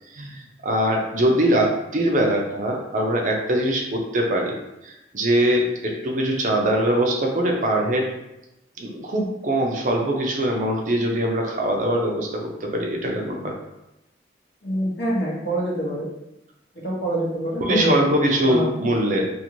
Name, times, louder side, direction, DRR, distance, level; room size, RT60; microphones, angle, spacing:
voice 1, 0.1-4.5 4.8-8.1 8.8-13.5 17.6-19.3, right 1 dB, 45° right, 1 dB, 0.4 m, -22 dB
voice 2, 14.6-16.1 16.8-18.0 18.5-18.7, right 1 dB, 65° left, -4 dB, 0.8 m, -25 dB
2.5 x 2.5 x 2.9 m, 0.92 s
head